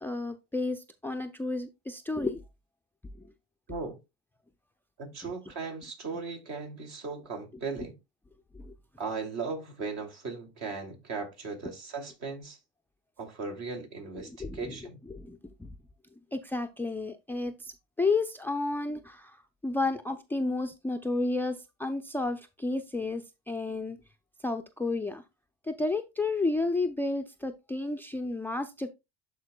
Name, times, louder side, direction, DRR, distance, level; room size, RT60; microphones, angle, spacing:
voice 1, 0.0-2.4 3.2-3.3 8.5-8.7 14.2-14.8 15.1-15.7 16.3-24.0 24.4-25.2 25.6-28.9, left 3 dB, 5° left, 0.4 m, -32 dB
voice 2, 5.0-7.9 9.0-12.6 13.2-15.0, right 4 dB, 55° right, 2.7 m, -37 dB
12.0 x 4.4 x 2.2 m
supercardioid pair, 100°, 32 cm